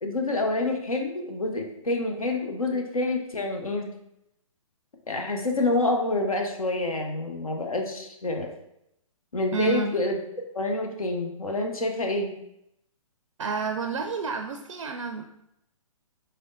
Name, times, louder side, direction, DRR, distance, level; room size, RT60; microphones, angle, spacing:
voice 1, 0.0-3.9 5.1-8.5 9.3-10.2 10.5-12.3, left 2 dB, 80° left, 3 dB, 0.7 m, -27 dB
voice 2, 9.5-10.0 13.4-15.2, right 5 dB, 65° right, 5 dB, 0.4 m, -30 dB
4.2 x 3.3 x 2.6 m, 0.80 s
figure-of-eight pair, 125°, 18 cm